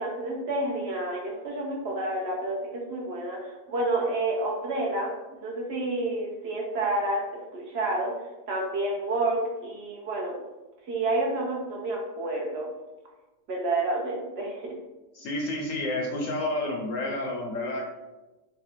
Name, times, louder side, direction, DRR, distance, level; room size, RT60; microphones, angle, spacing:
voice 1, 0.0-7.2 7.5-8.1 8.5-10.4 10.9-12.7 13.5-14.7, right 2 dB, 65° right, -2 dB, 0.6 m, -29 dB
voice 2, 15.1-17.8, left 1 dB, 70° left, 0 dB, 0.8 m, -30 dB
3.2 x 2.2 x 4.3 m, 1.1 s
omnidirectional pair, 1.7 m